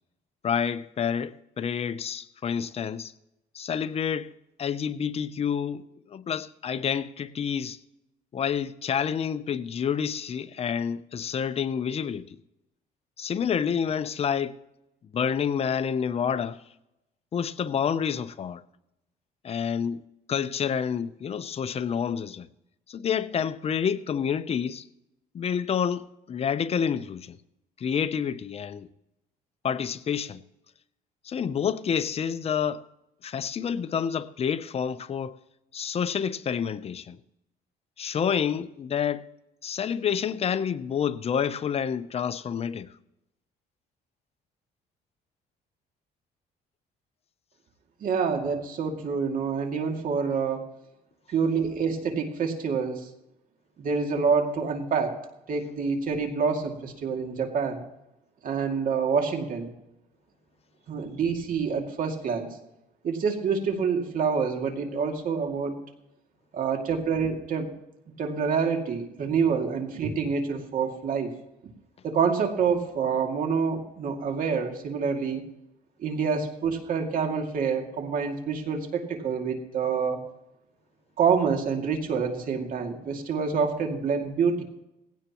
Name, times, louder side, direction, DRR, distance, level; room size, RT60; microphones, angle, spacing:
voice 1, 0.4-3.1 3.5-4.3 4.6-5.8 6.1-7.8 8.3-12.4 13.2-14.6 15.1-16.6 17.3-18.6 19.4-20.0 20.3-22.5 22.9-24.9 25.3-27.4 27.8-28.9 29.6-30.4 31.2-32.9 33.2-35.4 35.7-37.2 38.0-39.2 39.6-42.9, left 7 dB, 35° left, 0.7 m, -28 dB
voice 2, 48.0-50.6 51.3-53.1 53.8-55.2 55.5-57.8 58.4-59.7 60.9-62.6 63.0-65.8 66.5-67.7 68.2-71.3 72.0-75.5 76.0-80.2 81.2-84.6, right 5 dB, 55° right, 2.5 m, -27 dB
18.5 x 16.5 x 3.0 m
cardioid pair, 110°, 17 cm